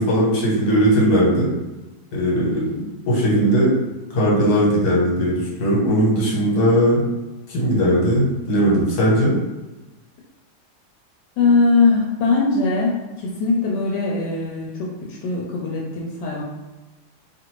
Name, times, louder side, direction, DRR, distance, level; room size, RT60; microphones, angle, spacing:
voice 1, 0.0-1.5 2.1-2.6 3.1-3.7 4.1-7.0 7.5-9.3, equal, 65° left, -5 dB, 1.5 m, -18 dB
voice 2, 2.5-2.9 11.4-16.4, left 3 dB, 85° left, -3 dB, 1.2 m, -21 dB
3.0 x 2.5 x 3.0 m, 1.1 s
omnidirectional pair, 1.9 m